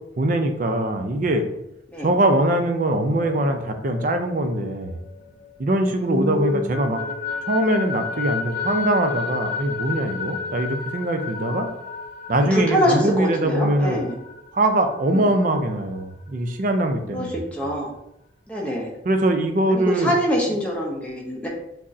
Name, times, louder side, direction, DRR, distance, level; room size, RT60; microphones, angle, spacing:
voice 1, 0.2-1.5 2.0-5.0 5.6-7.0 7.5-11.7 12.3-14.0 14.5-17.4 19.0-20.1, right 1 dB, 45° right, 6 dB, 0.4 m, -22 dB
sound 1, 3.0-5.8 6.2-15.6, left 5 dB, 45° left, 0.4 m, -33 dB
voice 2, 6.0-6.6 12.5-14.2 15.1-15.2 17.1-17.3 17.5-17.9 18.5-18.9 19.7-21.5, equal, 5° left, -3 dB, 0.7 m, -24 dB
5.9 x 2.0 x 2.6 m, 0.82 s
head